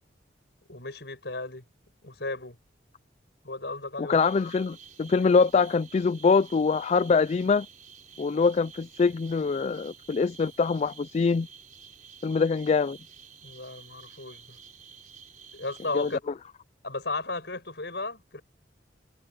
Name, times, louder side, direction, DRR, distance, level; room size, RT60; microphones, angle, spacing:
voice 1, 0.7-1.6 2.0-2.6 3.4-4.2 13.4-14.6 15.5-16.2 16.8-18.4, left 3 dB, 65° left, 6.0 m, -35 dB
voice 2, 4.0-7.7 8.2-11.5 12.2-13.0 15.9-16.1, left 4 dB, 35° left, 0.3 m, -24 dB
sound 1, 4.1-16.2, right 6 dB, 45° right, 5.0 m, -51 dB
head